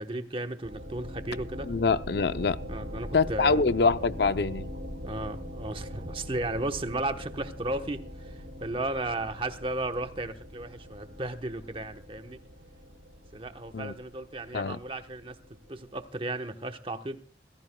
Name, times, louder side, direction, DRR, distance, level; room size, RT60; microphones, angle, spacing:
voice 1, 0.0-1.7 2.7-3.6 5.0-12.4 13.3-15.4 15.7-17.2, right 2 dB, 30° right, 1.0 m, -34 dB
sound 1, 0.6-16.0, equal, 65° right, 6.8 m, -42 dB
voice 2, 1.6-2.6 3.1-4.7 13.7-13.9 14.5-14.8, left 4 dB, 60° left, 0.6 m, -25 dB
27.5 x 16.0 x 2.3 m
head